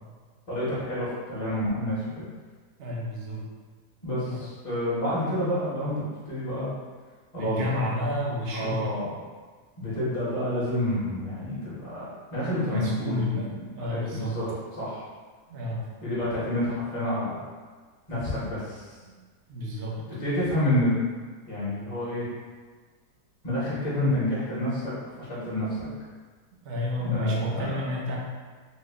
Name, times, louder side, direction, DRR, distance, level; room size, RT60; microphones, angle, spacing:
voice 1, 0.5-2.3 4.0-6.7 7.3-7.8 8.5-9.1 9.8-13.4 13.8-15.0 16.0-17.4 18.1-18.9 20.1-21.0 21.5-22.3 23.4-25.9 27.0-27.9, left 1 dB, 25° left, -10 dB, 0.9 m, -29 dB
voice 2, 2.8-3.4 4.2-4.4 7.3-8.9 12.7-13.5 13.7-14.3 15.5-15.8 19.0-19.2 19.5-19.9 26.6-28.2, left 2 dB, 60° right, -3 dB, 0.8 m, -30 dB
3.0 x 2.3 x 3.4 m, 1.5 s
omnidirectional pair, 1.7 m